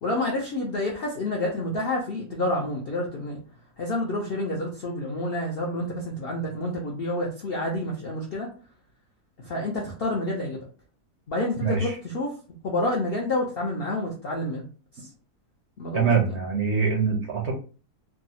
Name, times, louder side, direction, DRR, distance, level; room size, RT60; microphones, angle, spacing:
voice 1, 0.0-3.4 3.8-8.5 9.4-10.6 11.3-12.3 12.6-14.6 15.0-15.1 15.8-16.4, left 1 dB, 65° left, -2 dB, 0.5 m, -28 dB
voice 2, 11.6-12.0 15.9-17.5, right 5 dB, 65° right, 0 dB, 0.7 m, -24 dB
3.5 x 2.0 x 2.7 m, 0.38 s
omnidirectional pair, 1.7 m